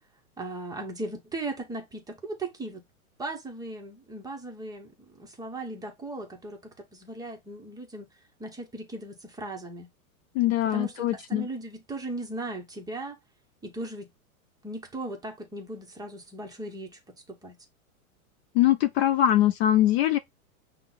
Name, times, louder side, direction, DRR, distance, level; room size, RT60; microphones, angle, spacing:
voice 1, 0.4-2.8 3.2-8.1 8.4-9.9 10.7-13.2 13.6-14.1 14.6-17.0 17.3-17.6, right 2 dB, 10° right, 0.7 m, -37 dB
voice 2, 10.3-11.5 18.5-20.2, left 12 dB, 50° left, 0.5 m, -22 dB
5.5 x 2.1 x 3.8 m
hypercardioid pair, 125°, 43 cm